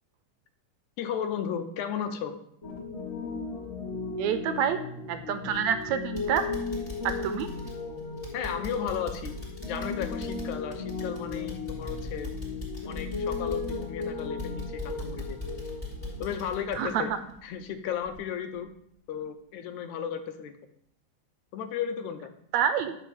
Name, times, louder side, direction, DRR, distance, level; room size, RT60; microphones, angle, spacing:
voice 1, 1.0-2.4 8.3-9.3 9.7-12.3 12.9-15.4 16.2-17.1 17.4-18.7 19.1-20.6 21.5-22.3, left 8 dB, 75° left, 9 dB, 2.1 m, -34 dB
Piano, 2.6-16.3, left 4 dB, 30° left, 1.3 m, -36 dB
voice 2, 4.2-4.8 5.1-6.4 7.0-7.5 16.8-17.0 22.5-23.0, right 8 dB, 75° right, 10 dB, 1.8 m, -27 dB
sound 1, 5.5-5.8 6.2-17.7 18.1-18.2 18.7-18.8, left 1 dB, 15° left, 3.9 m, -40 dB
12.5 x 4.7 x 7.1 m, 0.71 s
omnidirectional pair, 3.5 m